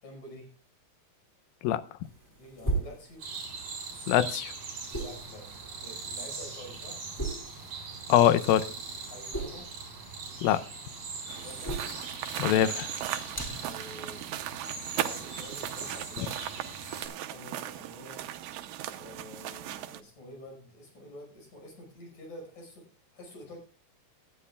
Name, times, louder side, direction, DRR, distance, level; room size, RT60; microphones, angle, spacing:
voice 1, 0.0-0.5 2.3-3.2 4.9-7.0 9.1-9.7 11.3-11.8 13.6-14.3 15.0-16.5 17.3-18.2 19.0-22.8 23.1-23.6, left 1 dB, 55° left, 6.7 m, -48 dB
sound 1, 2.0-16.8, right 2 dB, 5° left, 1.6 m, -41 dB
sound 2, 3.2-17.1, right 4 dB, 55° right, 5.1 m, -41 dB
voice 2, 4.1-4.5 8.1-8.7 10.4-10.6 12.4-12.9, left 11 dB, 90° left, 2.5 m, -23 dB
sound 3, 11.3-20.0, right 12 dB, 80° right, 2.4 m, -38 dB
18.0 x 11.5 x 2.3 m
omnidirectional pair, 4.1 m